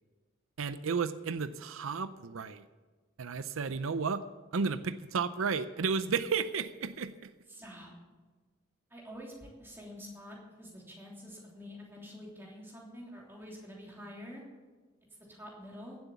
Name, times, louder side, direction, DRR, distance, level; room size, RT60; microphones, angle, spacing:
voice 1, 0.6-2.6 3.2-4.2 4.5-7.3, right 5 dB, 85° right, 13 dB, 0.5 m, -33 dB
voice 2, 7.5-7.9 8.9-14.4 15.3-16.0, equal, 10° right, -3 dB, 3.1 m, -47 dB
16.0 x 7.9 x 7.1 m, 1.3 s
head